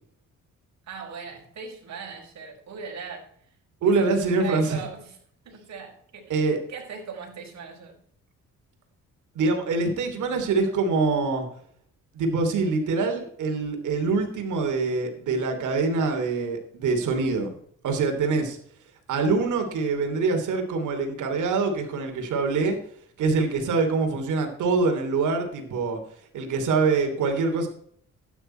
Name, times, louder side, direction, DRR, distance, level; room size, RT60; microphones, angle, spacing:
voice 1, 0.9-3.2 3.8-5.2 5.4-8.0, right 5 dB, 60° right, 0 dB, 5.1 m, -39 dB
voice 2, 3.8-4.8 6.3-6.6 9.3-11.5 12.1-17.6 17.8-18.6 19.1-22.8 23.2-26.0 26.3-27.7, right 4 dB, 75° right, 5 dB, 3.1 m, -24 dB
12.5 x 10.0 x 4.5 m, 0.64 s
cardioid pair, 80°, 30 cm